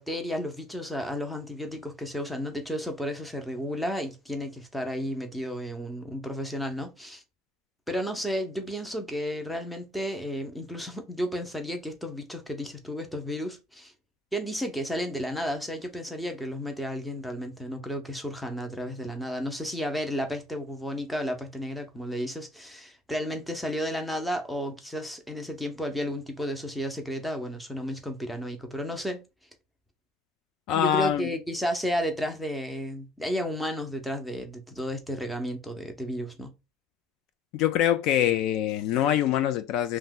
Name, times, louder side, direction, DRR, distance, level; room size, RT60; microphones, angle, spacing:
voice 1, 0.0-7.2 7.9-13.9 14.3-29.2 30.7-36.5, equal, 5° left, 0.6 m, -32 dB
voice 2, 30.7-31.3 37.5-40.0, left 11 dB, 55° left, 0.3 m, -24 dB
2.7 x 2.1 x 3.6 m
supercardioid pair, 135°, 0 cm